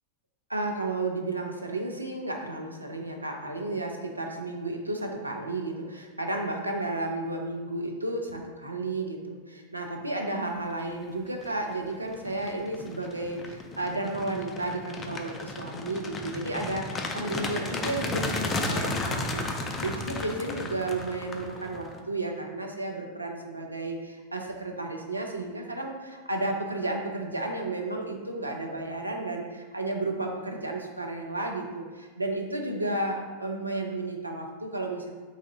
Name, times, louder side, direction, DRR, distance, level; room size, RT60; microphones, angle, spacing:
voice 1, 0.5-35.1, right 2 dB, 85° right, 1 dB, 0.5 m, -33 dB
sound 1, 11.2-11.5 11.9-22.0, left 2 dB, 20° left, 0.4 m, -34 dB
4.1 x 2.6 x 3.9 m, 1.4 s
figure-of-eight pair, 90°, 0 cm